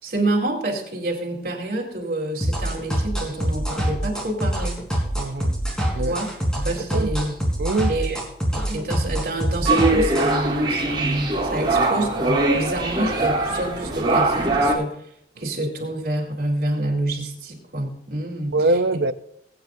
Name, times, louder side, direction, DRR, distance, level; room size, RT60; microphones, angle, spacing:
voice 1, 0.0-4.8 6.0-6.3 6.5-7.4 7.9-8.2 8.5-15.0 15.4-18.6, right 1 dB, 55° right, 4.0 m, -27 dB
sound 1, 2.4-10.3, equal, 5° left, 4.0 m, -25 dB
voice 2, 5.2-5.5 5.9-6.1 6.9-7.2 7.6-7.9 18.5-19.1, right 2 dB, 75° right, 0.7 m, -22 dB
sound 2, 9.7-14.7, right 2 dB, 30° right, 3.5 m, -21 dB
23.0 x 9.6 x 2.7 m
head